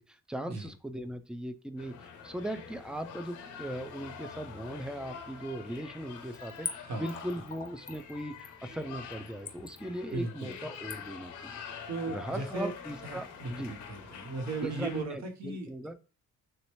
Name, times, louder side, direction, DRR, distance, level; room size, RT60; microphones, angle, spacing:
voice 1, 0.0-11.5 12.1-13.7 14.6-15.9, right 1 dB, 5° right, 9 dB, 0.4 m, -39 dB
sound 1, 1.8-15.0, left 7 dB, 75° left, 0.8 m, -46 dB
Splash splatter / Trickle dribble, 6.3-12.7 13.1-13.2, left 5 dB, 30° left, 0.7 m, -44 dB
voice 2, 6.8-7.3 10.1-10.6 11.9-12.7 13.0-15.7, right 3 dB, 65° right, 4 dB, 1.1 m, -37 dB
3.1 x 2.8 x 3.0 m, 0.35 s
cardioid pair, 90°, 30 cm